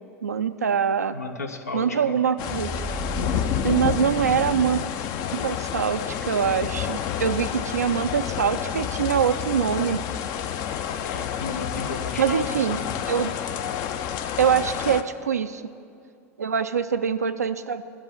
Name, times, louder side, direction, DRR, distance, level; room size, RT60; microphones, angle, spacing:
voice 1, 0.2-1.2 1.7-2.8 3.6-4.8 5.3-10.0 12.2-12.8 13.1-13.4 14.4-15.6 16.4-17.8, right 7 dB, 85° right, 8 dB, 0.3 m, -24 dB
voice 2, 1.1-2.1 10.9-12.9, left 4 dB, 85° left, 7 dB, 0.8 m, -34 dB
Galactic Fracture FX, 2.2-5.1 5.4-5.5, right 6 dB, 10° right, 0.6 m, -37 dB
sound 1, 2.4-15.0, left 9 dB, 50° left, 0.6 m, -29 dB
10.5 x 7.3 x 9.1 m, 2.5 s
figure-of-eight pair, 80°, 8 cm